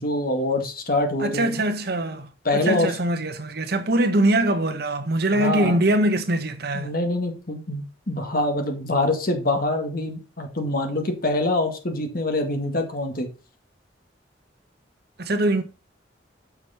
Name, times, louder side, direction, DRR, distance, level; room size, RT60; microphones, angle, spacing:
voice 1, 0.0-1.6 2.5-2.9 5.3-5.8 6.7-13.3, left 2 dB, 50° left, 1.9 m, -25 dB
voice 2, 1.2-6.9 15.2-15.6, right 1 dB, 55° right, 1.0 m, -23 dB
6.6 x 6.1 x 4.3 m
head